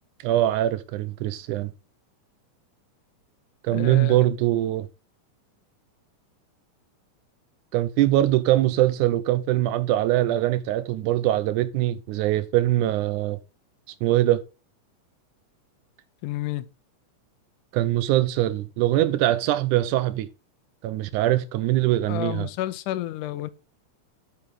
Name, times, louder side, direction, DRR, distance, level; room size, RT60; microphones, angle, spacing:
voice 1, 0.2-1.7 3.6-4.9 7.7-13.4 14.0-14.4 17.7-20.3 20.8-22.5, right 14 dB, 80° right, 2.0 m, -22 dB
voice 2, 3.7-4.2 16.2-16.7 22.1-23.5, left 15 dB, 80° left, 2.1 m, -30 dB
8.6 x 6.5 x 3.6 m
omnidirectional pair, 3.7 m